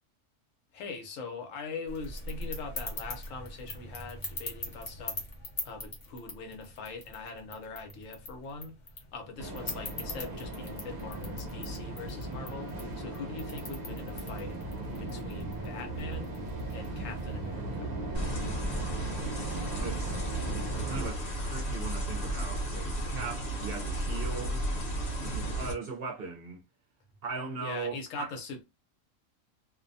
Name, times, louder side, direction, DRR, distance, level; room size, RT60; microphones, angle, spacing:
voice 1, 0.7-5.2 5.6-8.7 9.1-12.7 13.0-14.6 15.0-16.3 16.7-17.9 25.2-25.6 27.6-28.6, left 4 dB, 80° left, 1.1 m, -42 dB
sound 1, 1.9-17.5, left 2 dB, 40° left, 0.9 m, -43 dB
sound 2, 9.4-21.1, right 2 dB, 85° right, 0.3 m, -37 dB
sound 3, 18.1-25.7, right 1 dB, 55° left, 1.1 m, -34 dB
voice 2, 19.3-20.2 20.8-24.6 25.2-26.6 27.2-28.3, right 4 dB, 60° right, 0.7 m, -39 dB
2.6 x 2.1 x 2.5 m
omnidirectional pair, 1.4 m